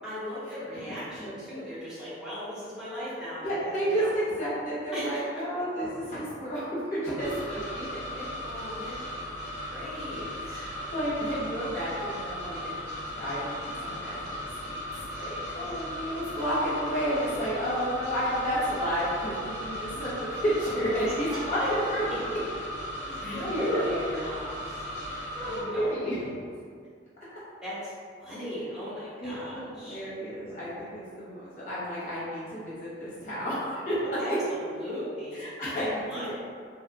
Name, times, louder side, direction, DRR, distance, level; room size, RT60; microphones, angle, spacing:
voice 1, 0.0-4.2 4.9-5.4 8.4-9.0 9.7-10.6 15.4-15.7 17.5-17.6 20.9-21.7 22.0-22.2 23.0-24.8 25.4-26.3 27.6-27.9 28.2-30.0 34.2-36.3, equal, 5° right, -13 dB, 0.8 m, -38 dB
voice 2, 0.9-1.6 3.4-7.8 8.1-8.2 10.4-21.6 21.9-22.0 23.2-24.1 25.1-26.3 29.2-34.4 35.4-36.3, equal, 40° left, -10 dB, 0.7 m, -31 dB
sound 1, 7.2-25.6, equal, 50° right, 0.7 m, -37 dB
2.8 x 2.0 x 2.5 m, 2.1 s
head